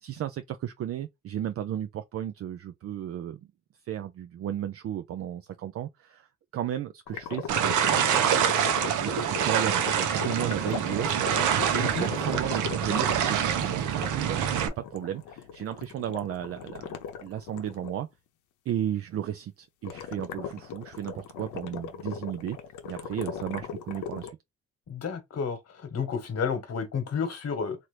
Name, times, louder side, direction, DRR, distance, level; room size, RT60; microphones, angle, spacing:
voice 1, 0.0-3.4 3.9-6.3 6.5-7.7 8.9-11.2 11.5-14.5 14.8-16.9 17.2-18.1 18.7-22.6 22.8-24.4, right 11 dB, 50° right, 0.4 m, -34 dB
sound 1, 7.1-18.0 19.8-24.3, left 7 dB, 80° left, 0.7 m, -38 dB
sound 2, 7.5-14.7, right 9 dB, 85° right, 0.7 m, -26 dB
voice 2, 24.9-27.8, left 6 dB, 55° left, 1.2 m, -31 dB
2.9 x 2.5 x 3.1 m
cardioid pair, 90°, 30 cm